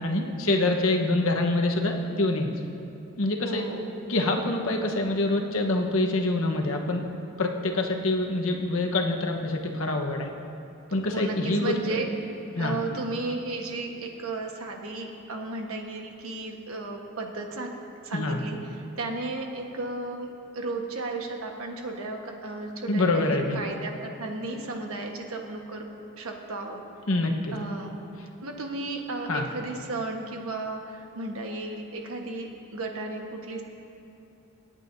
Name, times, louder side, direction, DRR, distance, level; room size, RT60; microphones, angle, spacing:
voice 1, 0.0-2.5 3.2-3.6 4.1-7.0 7.4-10.3 10.9-12.0 12.5-12.8 18.1-18.4 22.9-23.6 27.1-27.5 29.3-29.4, left 2 dB, 75° left, 2 dB, 1.1 m, -25 dB
voice 2, 3.4-3.9 11.1-12.1 12.6-17.8 18.0-18.6 19.0-20.3 20.5-25.8 26.2-26.8 27.5-28.0 28.4-33.6, right 2 dB, 80° right, 2 dB, 1.3 m, -34 dB
26.5 x 9.0 x 2.7 m, 2.8 s
head